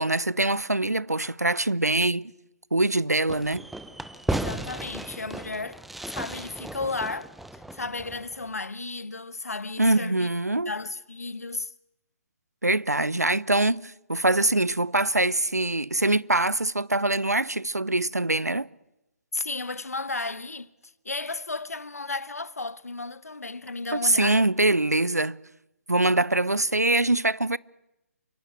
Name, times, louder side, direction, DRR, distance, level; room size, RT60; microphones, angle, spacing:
voice 1, 0.0-2.3 2.7-3.7 9.8-10.7 12.6-18.7 23.9-25.4 25.9-27.6, right 2 dB, 85° right, 0.8 m, -23 dB
Fireworks, 3.3-8.5, right 1 dB, ahead, 1.0 m, -35 dB
voice 2, 4.3-10.3 10.6-11.7 19.3-20.7 21.0-24.4, left 3 dB, 75° left, 1.2 m, -34 dB
29.0 x 16.5 x 9.3 m
figure-of-eight pair, 135°, 8 cm